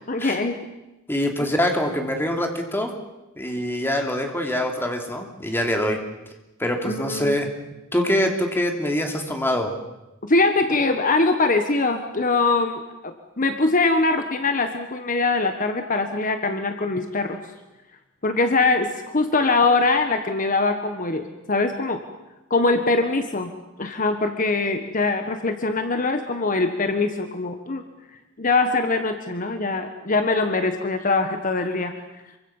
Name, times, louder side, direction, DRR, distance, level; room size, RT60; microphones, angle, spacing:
voice 1, 0.1-0.6 1.4-1.5 6.8-7.4 10.2-17.4 18.2-22.0 22.5-23.5 23.8-27.8 28.4-31.9, left 3 dB, 40° left, 7 dB, 1.4 m, -22 dB
voice 2, 1.1-2.9 3.4-6.0 6.6-7.5 7.9-9.8, left 1 dB, 10° left, 3 dB, 3.1 m, -24 dB
26.5 x 24.0 x 7.3 m, 0.98 s
head